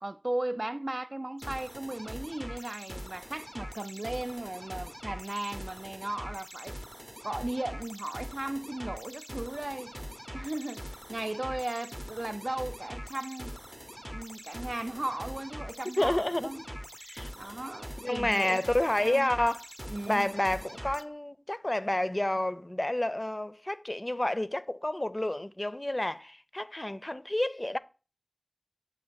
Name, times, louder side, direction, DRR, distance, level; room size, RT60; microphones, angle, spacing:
voice 1, 0.0-6.8 7.2-9.9 10.3-13.6 14.1-16.6 17.4-18.6 19.0-19.3 19.9-20.3, right 1 dB, 65° right, 0.4 m, -36 dB
sound 1, 1.4-21.0, equal, 15° right, 0.6 m, -43 dB
voice 2, 16.0-16.5 17.0-17.3 18.0-19.6 20.1-27.8, left 1 dB, 40° left, 0.4 m, -29 dB
7.7 x 3.1 x 5.7 m
wide cardioid pair, 40°, 0 cm